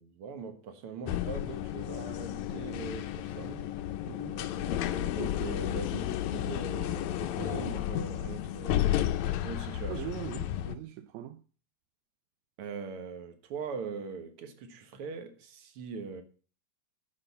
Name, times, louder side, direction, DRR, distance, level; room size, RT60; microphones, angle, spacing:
voice 1, 0.0-3.5 4.3-9.2 9.4-10.1 12.6-16.2, right 5 dB, 55° right, 1.9 m, -41 dB
sound 1, 1.1-10.8, left 12 dB, 75° left, 1.8 m, -32 dB
voice 2, 4.1-4.4 9.9-11.4, right 12 dB, 80° right, 1.6 m, -41 dB
12.0 x 5.2 x 8.2 m
omnidirectional pair, 3.8 m